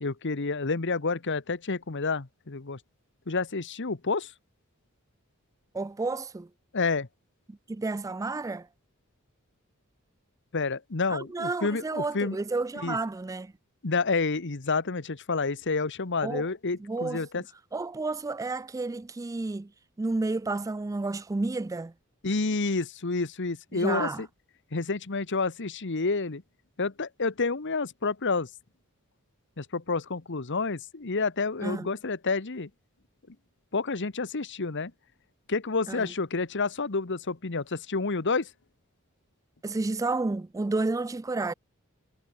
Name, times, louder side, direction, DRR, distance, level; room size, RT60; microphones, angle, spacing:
voice 1, 0.0-2.8 3.3-4.3 6.7-7.1 10.5-12.4 12.8-13.0 13.8-17.4 22.2-24.3 24.7-26.4 26.8-28.5 29.6-32.7 33.7-34.9 35.5-38.5, left 4 dB, 55° left, 1.2 m, -29 dB
voice 2, 5.7-6.5 7.5-8.7 11.1-13.5 16.2-16.4 16.8-17.4 17.7-19.7 20.0-21.9 23.7-24.2 31.6-31.9 35.9-36.1 39.6-41.5, right 3 dB, 15° right, 0.3 m, -31 dB
head